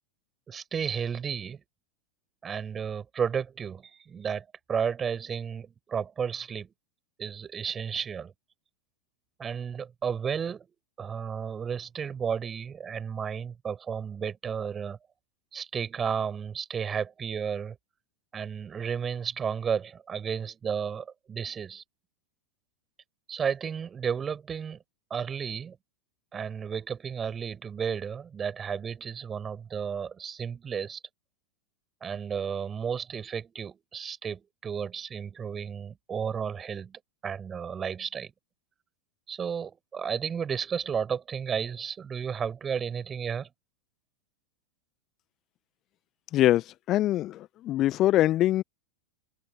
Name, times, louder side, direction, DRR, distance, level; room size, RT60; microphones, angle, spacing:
voice 1, 0.5-1.6 2.4-6.7 7.2-8.3 9.4-10.6 11.0-15.0 15.5-17.8 18.3-21.8 23.3-24.8 25.1-25.8 26.3-31.0 32.0-38.3 39.3-43.5, right 7 dB, 20° right, 6.3 m, -33 dB
voice 2, 46.3-48.6, left 14 dB, 35° left, 1.1 m, -24 dB
figure-of-eight pair, 90°, 0 cm